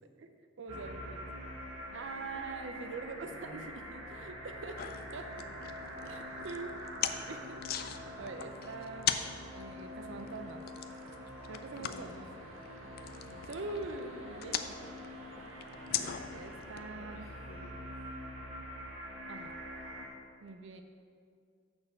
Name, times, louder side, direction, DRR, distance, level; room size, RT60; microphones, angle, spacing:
voice 1, 0.2-1.3 1.9-4.8 5.1-5.3 6.1-6.8 7.1-9.2 9.5-10.6 11.5-12.2 13.5-14.9 15.9-17.3 19.3-19.6 20.4-20.8, right 3 dB, 65° right, 6 dB, 0.5 m, -44 dB
voice 2, 0.7-1.2 3.1-3.7 4.0-4.2 5.4-6.3 11.7-12.4 13.2-13.5 16.9-17.9, left 2 dB, 85° left, 0 dB, 0.7 m, -53 dB
sound 1, 0.7-20.1, equal, 80° right, 1.4 m, -45 dB
sound 2, 4.8-16.8, left 9 dB, 50° left, 0.4 m, -41 dB
6.4 x 6.1 x 6.3 m, 2.2 s
head